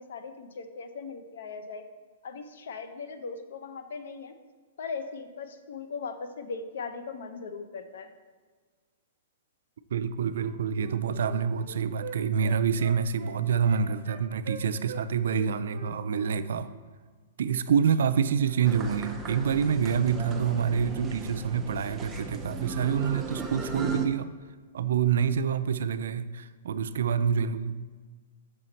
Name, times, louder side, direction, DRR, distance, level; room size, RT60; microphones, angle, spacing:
voice 1, 0.0-1.8 2.2-4.3 4.8-8.1, left 5 dB, 75° left, 8 dB, 0.6 m, -39 dB
voice 2, 9.9-16.7 17.4-24.3 24.7-27.7, right 7 dB, 75° right, 13 dB, 0.3 m, -27 dB
Wind instrument woodwind instrument, 10.4-15.0 15.3-16.4 16.6-16.8, right 5 dB, 50° right, 1.0 m, -43 dB
sound 1, 18.6-24.1, right 4 dB, 10° right, 0.5 m, -36 dB
6.4 x 4.4 x 4.0 m, 1.5 s
hypercardioid pair, 160°, 0 cm